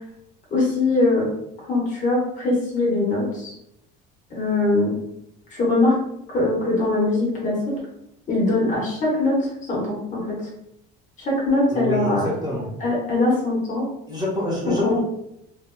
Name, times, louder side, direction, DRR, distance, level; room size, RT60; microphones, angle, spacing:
voice 1, 0.5-1.3 1.7-3.5 4.3-5.0 5.5-6.0 6.3-7.6 8.3-10.5 11.2-12.2 12.8-13.9 14.8-14.9, left 2 dB, 35° left, -4 dB, 1.1 m, -22 dB
voice 2, 11.7-12.6 14.1-15.0, left 1 dB, 20° right, -5 dB, 0.9 m, -26 dB
3.2 x 2.3 x 2.2 m, 0.82 s
cardioid pair, 135°, 21 cm